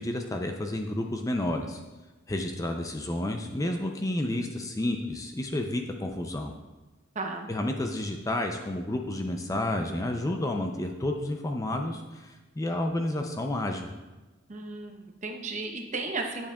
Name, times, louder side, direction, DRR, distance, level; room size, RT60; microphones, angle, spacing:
voice 1, 0.0-1.8 2.3-6.5 7.5-13.9, left 1 dB, 15° left, 4 dB, 0.4 m, -30 dB
voice 2, 7.2-7.5 14.5-16.5, right 3 dB, 35° right, 3 dB, 0.7 m, -34 dB
9.9 x 7.2 x 2.3 m, 1.2 s
head